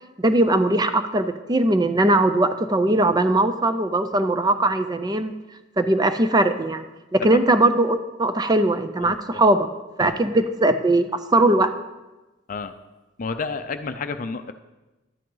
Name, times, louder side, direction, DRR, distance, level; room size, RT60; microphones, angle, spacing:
voice 1, 0.2-5.3 5.8-6.8 7.1-9.7 10.0-11.7, right 2 dB, 20° right, 9 dB, 0.5 m, -20 dB
voice 2, 9.0-9.4 10.0-10.2 12.5-12.7 13.2-14.5, left 4 dB, 45° left, 9 dB, 0.5 m, -31 dB
11.5 x 10.5 x 3.9 m, 1.1 s
head